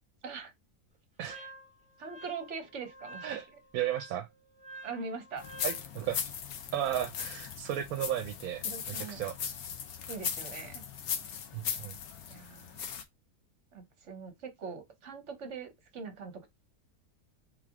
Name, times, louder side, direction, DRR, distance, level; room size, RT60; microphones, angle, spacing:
Wind instrument woodwind instrument, 1.3-5.9, right 2 dB, 5° right, 0.9 m, -50 dB
voice 1, 2.0-3.3 4.8-5.5 8.6-9.2 10.1-10.8 12.3-12.8 13.7-16.5, right 5 dB, 55° right, 1.2 m, -42 dB
voice 2, 3.7-4.3 5.6-6.2 6.7-9.4 11.5-12.0, right 11 dB, 75° right, 1.0 m, -34 dB
sound 1, 5.4-13.0, left 8 dB, 75° left, 1.2 m, -38 dB
3.7 x 3.3 x 3.5 m
omnidirectional pair, 1.6 m